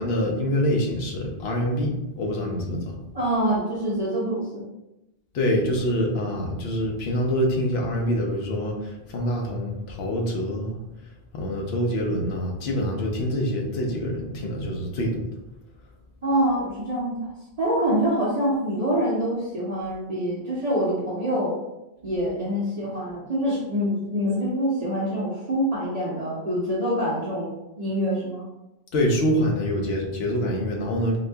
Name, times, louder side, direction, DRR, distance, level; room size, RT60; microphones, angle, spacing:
voice 1, 0.0-3.0 5.3-10.8 11.3-15.2 28.9-31.2, equal, 80° left, 0 dB, 0.9 m, -25 dB
voice 2, 3.1-4.6 16.2-17.2 17.6-21.5 22.0-28.5, equal, 40° right, -7 dB, 0.8 m, -25 dB
4.0 x 3.0 x 2.2 m, 0.93 s
omnidirectional pair, 1.1 m